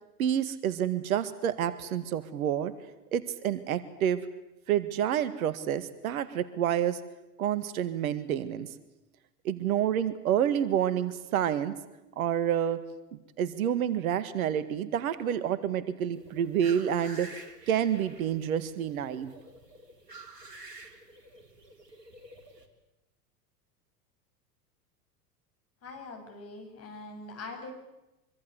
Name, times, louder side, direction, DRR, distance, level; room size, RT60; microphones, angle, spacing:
voice 1, 0.2-2.7 3.1-4.2 4.7-7.0 7.4-8.7 9.4-11.8 12.2-12.8 13.1-17.3 17.7-19.3, right 9 dB, 60° right, 14 dB, 1.9 m, -28 dB
sound 1, 16.1-22.7, right 2 dB, 85° right, 3.7 m, -49 dB
voice 2, 25.8-27.7, left 3 dB, 30° left, 4 dB, 8.0 m, -43 dB
24.5 x 24.5 x 8.2 m, 0.97 s
figure-of-eight pair, 90°, 47 cm